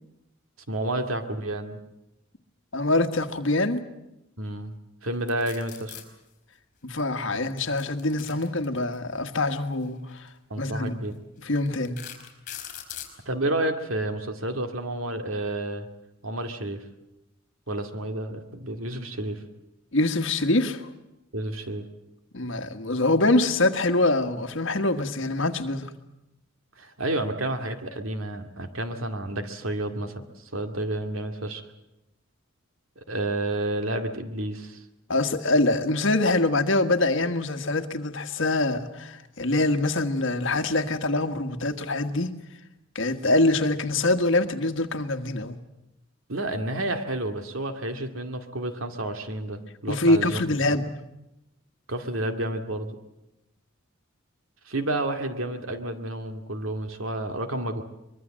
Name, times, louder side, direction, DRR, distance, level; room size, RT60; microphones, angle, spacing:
voice 1, 0.7-1.8 4.4-4.7 5.0-6.0 10.5-11.2 13.3-15.9 16.2-16.8 17.7-19.4 21.3-21.9 26.8-30.2 30.5-31.6 33.0-34.8 46.3-50.4 51.9-53.0 54.7-57.8, right 1 dB, 85° right, 2.2 m, -30 dB
voice 2, 2.7-3.8 6.8-10.3 10.6-11.0 11.4-12.0 19.9-20.9 22.3-25.9 35.1-42.3 42.9-45.6 49.9-50.9, left 2 dB, 65° left, 1.6 m, -24 dB
sound 1, 5.3-6.0 7.5-9.0 10.1-10.3 10.9-11.0 11.6-13.1, left 11 dB, 40° left, 4.8 m, -40 dB
24.0 x 22.5 x 7.6 m
head